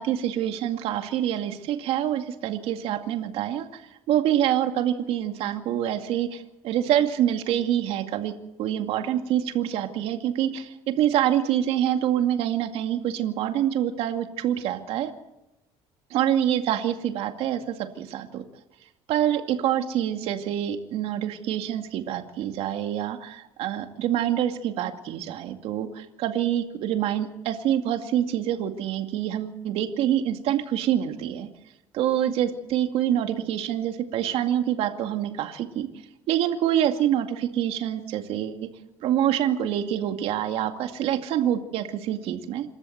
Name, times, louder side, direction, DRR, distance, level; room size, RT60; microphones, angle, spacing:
voice 1, 0.0-3.8 4.1-8.3 8.6-15.1 16.1-18.4 19.1-31.5 31.9-35.9 36.3-38.7 39.0-42.7, right 11 dB, 70° right, 6 dB, 2.3 m, -26 dB
27.5 x 13.5 x 7.9 m, 0.92 s
cardioid pair, 140°, 10 cm